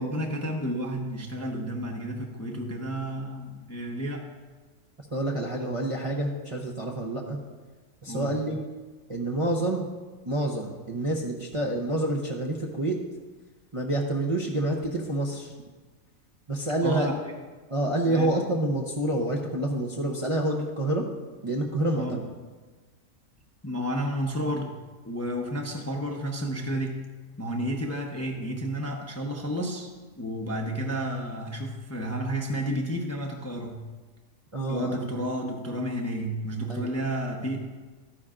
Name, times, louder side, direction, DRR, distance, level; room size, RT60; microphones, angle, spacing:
voice 1, 0.0-4.3 8.1-8.3 16.8-17.3 18.0-18.3 22.0-22.1 23.6-24.7 25.0-27.0 27.4-29.9 30.2-33.8 34.7-37.6, equal, 15° left, 0 dB, 0.6 m, -31 dB
voice 2, 5.0-7.4 8.0-8.6 9.1-9.9 10.2-13.0 13.7-15.5 16.5-17.1 17.7-21.1 21.4-22.2 34.5-35.0 36.7-36.9, right 1 dB, 30° right, -2 dB, 0.7 m, -28 dB
13.0 x 9.9 x 2.5 m, 1.3 s
omnidirectional pair, 1.5 m